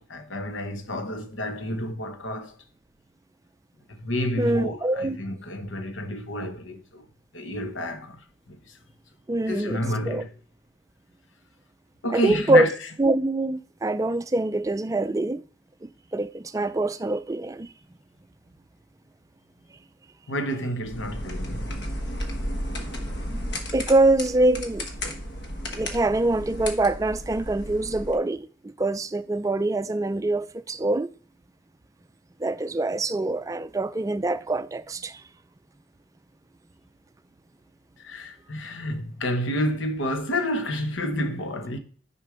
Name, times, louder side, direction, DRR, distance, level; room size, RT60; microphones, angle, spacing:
voice 1, 0.0-2.6 3.9-7.0 7.3-8.8 9.5-10.3 12.0-12.7 20.3-21.8 38.0-41.8, left 1 dB, 90° left, 1.1 m, -30 dB
voice 2, 4.4-5.2 9.3-10.2 12.1-12.7 13.0-15.4 15.8-17.7 23.3-23.4 23.7-24.8 25.7-28.5 28.8-31.1 32.4-35.2, right 2 dB, 15° right, 0.3 m, -24 dB
sound 1, 20.8-28.2, equal, 60° left, 1.2 m, -33 dB
6.5 x 4.4 x 5.1 m
head